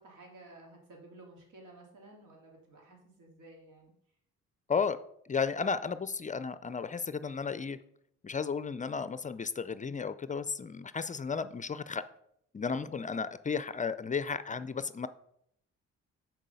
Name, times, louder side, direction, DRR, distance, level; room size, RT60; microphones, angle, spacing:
voice 1, 0.0-3.9, right 2 dB, 85° right, 0 dB, 2.8 m, -54 dB
voice 2, 5.3-7.8 8.2-12.0 12.5-15.1, left 5 dB, 25° left, 14 dB, 0.4 m, -33 dB
7.3 x 4.7 x 6.9 m, 0.73 s
cardioid pair, 90°, 30 cm